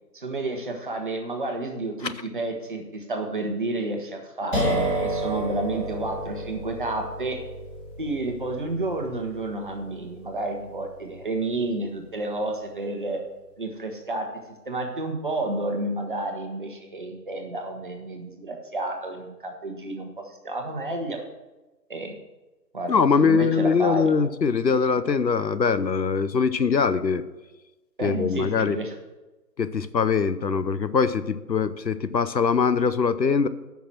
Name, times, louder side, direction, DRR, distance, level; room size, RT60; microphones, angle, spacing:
voice 1, 0.1-7.4 8.0-13.2 13.6-14.3 14.7-21.2 21.9-22.2 22.7-24.1 28.0-28.9, right 2 dB, 30° right, 3 dB, 1.0 m, -30 dB
sound 1, 4.5-12.1, right 1 dB, 10° left, 2.3 m, -31 dB
voice 2, 22.9-27.2 28.0-28.8 29.6-33.5, left 5 dB, 85° left, 13 dB, 0.8 m, -22 dB
8.4 x 5.9 x 7.5 m, 1.1 s
figure-of-eight pair, 150°, 49 cm